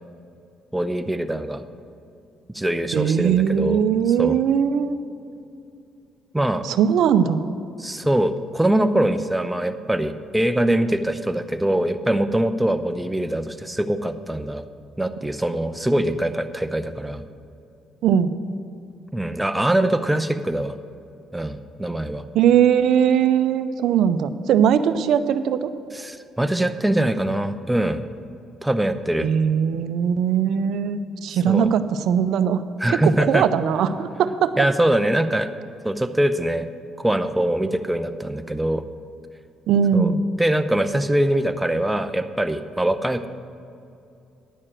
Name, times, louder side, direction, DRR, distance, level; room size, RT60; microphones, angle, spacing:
voice 1, 0.7-1.6 2.5-3.8 4.2-4.4 6.3-6.6 7.8-14.6 15.0-17.2 19.1-20.7 21.3-22.3 25.9-28.0 28.6-29.3 31.4-31.7 32.8-33.5 34.6-35.5 35.8-36.7 37.0-38.8 39.9-40.1 40.4-43.3, right 1 dB, 10° right, 9 dB, 0.6 m, -23 dB
voice 2, 2.9-5.0 6.6-7.4 18.0-18.3 22.3-25.7 29.2-32.6 33.0-34.5 39.7-40.2, right 8 dB, 70° right, 12 dB, 0.5 m, -20 dB
10.0 x 6.4 x 7.5 m, 2.6 s
supercardioid pair, 70°, 0 cm